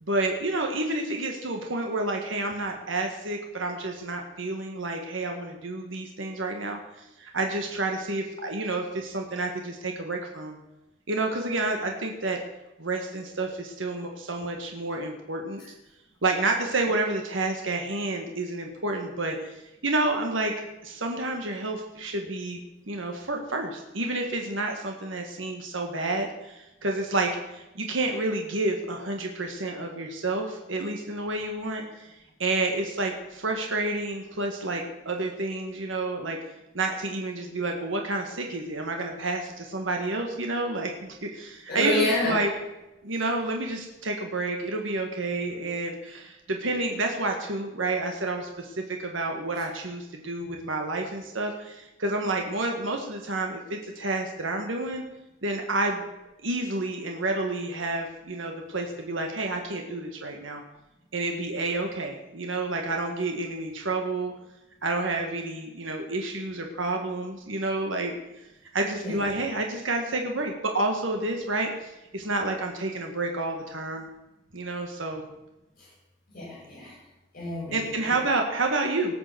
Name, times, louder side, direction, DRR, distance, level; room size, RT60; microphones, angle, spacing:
voice 1, 0.0-10.6 11.1-12.4 12.8-15.6 16.2-19.5 19.8-20.5 20.8-32.1 32.4-36.4 36.7-42.5 43.0-55.0 55.4-56.0 56.4-60.6 61.1-64.3 64.8-68.1 68.7-74.1 74.5-75.2 77.7-79.1, right 2 dB, 70° right, 2 dB, 1.7 m, -29 dB
voice 2, 41.7-42.4 68.9-69.2 75.8-75.9 76.3-77.0 77.3-78.2, left 1 dB, 50° left, -8 dB, 6.5 m, -29 dB
18.5 x 7.0 x 6.9 m, 0.96 s
head